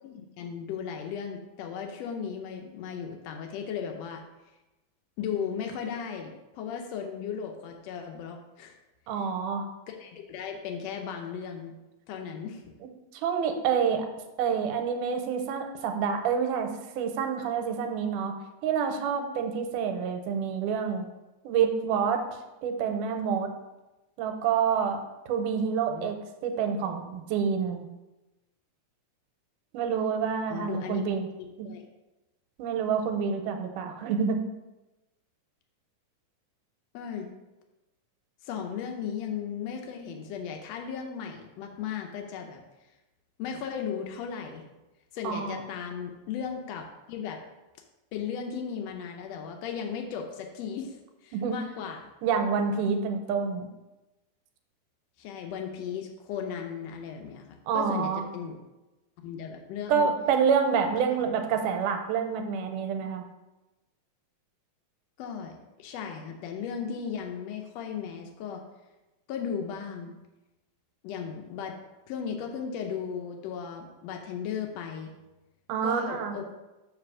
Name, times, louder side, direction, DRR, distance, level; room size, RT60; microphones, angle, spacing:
voice 1, 0.0-4.2 5.2-8.8 9.9-11.7 12.1-12.6 25.9-26.1 30.5-31.1 31.6-31.8 36.9-37.3 38.4-42.6 43.4-44.6 45.1-47.4 48.1-51.0 51.2-52.1 55.2-58.6 59.2-60.1 65.2-68.6 69.3-70.1 71.0-71.8 72.1-75.1 75.8-76.4, left 7 dB, 90° left, 3 dB, 1.4 m, -36 dB
voice 2, 9.1-9.7 13.1-14.1 14.4-16.7 17.0-18.3 18.6-21.1 21.4-22.2 22.6-23.5 24.2-25.0 25.3-26.2 26.4-27.9 29.7-31.3 31.6-31.7 32.6-34.4 45.2-45.6 51.3-51.6 52.2-53.7 57.7-58.2 59.9-63.2 75.7-76.4, right 6 dB, 90° right, 5 dB, 2.2 m, -27 dB
6.6 x 3.3 x 6.1 m, 1.0 s
omnidirectional pair, 3.7 m